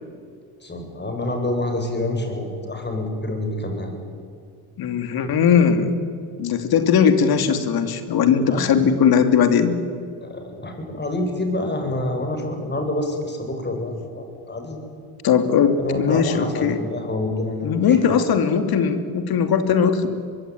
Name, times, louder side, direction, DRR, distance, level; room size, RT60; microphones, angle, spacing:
voice 1, 0.6-4.0 8.5-8.9 10.2-14.8 15.8-18.0, left 1 dB, 25° left, 4 dB, 7.8 m, -27 dB
voice 2, 4.8-5.9 6.4-9.8 15.2-16.8 17.6-20.1, left 7 dB, 55° left, 8 dB, 3.1 m, -19 dB
23.5 x 23.0 x 9.6 m, 2.2 s
hypercardioid pair, 70°, 44 cm